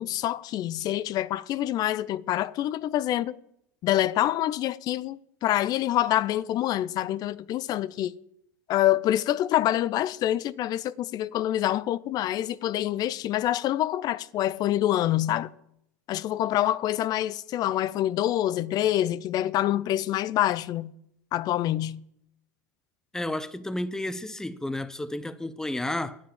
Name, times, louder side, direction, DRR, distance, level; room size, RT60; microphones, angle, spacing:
voice 1, 0.0-3.4 3.8-8.1 8.7-15.5 16.1-20.9 21.3-22.0, left 13 dB, 40° left, 0.5 m, -26 dB
voice 2, 23.1-26.2, left 1 dB, 5° left, 0.7 m, -32 dB
10.0 x 7.5 x 7.4 m
hypercardioid pair, 95°, 10 cm